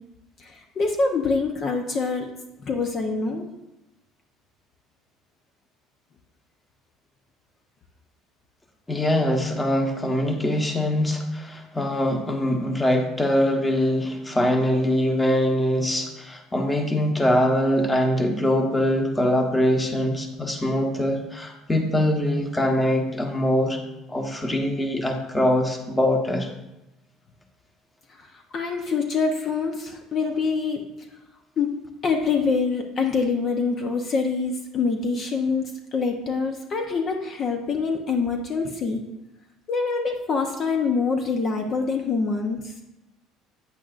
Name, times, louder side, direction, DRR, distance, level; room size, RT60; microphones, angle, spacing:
voice 1, 0.4-2.3 2.7-3.5 28.5-30.8 31.6-31.7 32.0-39.0 39.7-42.7, left 4 dB, 45° left, 3 dB, 0.9 m, -25 dB
voice 2, 8.9-23.8 24.1-26.5, left 1 dB, 15° left, 3 dB, 1.2 m, -23 dB
8.9 x 8.4 x 2.6 m, 0.93 s
supercardioid pair, 90°, 0 cm